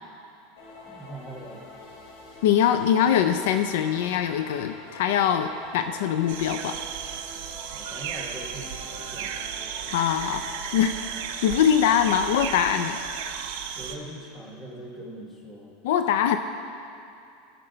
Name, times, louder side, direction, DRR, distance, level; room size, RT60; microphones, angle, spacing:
sound 1, 0.6-13.3, left 2 dB, 90° left, 2.8 m, -46 dB
voice 1, 0.8-1.7 7.7-9.4 13.7-15.7, right 1 dB, 15° left, -1 dB, 1.3 m, -41 dB
voice 2, 2.4-6.8 9.9-10.5 10.7-11.0 11.4-13.0 15.8-16.4, left 9 dB, 65° left, 9 dB, 0.4 m, -22 dB
sound 2, 6.3-14.0, right 8 dB, 65° right, 0.7 m, -35 dB
17.0 x 6.5 x 3.9 m, 2.6 s
supercardioid pair, 170°, 0 cm